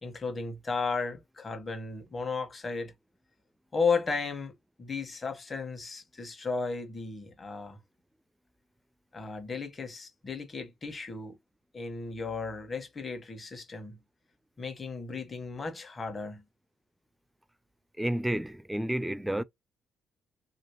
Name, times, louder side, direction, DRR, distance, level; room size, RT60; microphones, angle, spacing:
voice 1, 0.0-2.9 3.7-4.5 4.8-7.8 9.1-11.4 11.7-14.0 14.6-16.4, left 4 dB, 35° left, 1.3 m, -34 dB
voice 2, 18.0-19.4, right 1 dB, 5° right, 0.4 m, -30 dB
3.0 x 2.9 x 3.0 m
cardioid pair, 90°, 0 cm